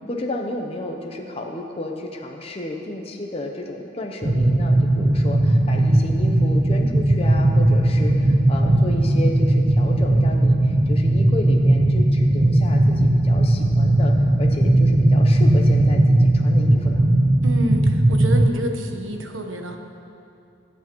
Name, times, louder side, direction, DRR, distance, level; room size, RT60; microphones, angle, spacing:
voice 1, 0.1-17.0, left 1 dB, 30° left, 2 dB, 0.7 m, -32 dB
sound 1, 4.2-18.5, right 1 dB, 25° right, 0.5 m, -17 dB
voice 2, 17.4-19.8, right 1 dB, 75° right, 4 dB, 1.1 m, -28 dB
22.0 x 8.2 x 3.0 m, 2.6 s
head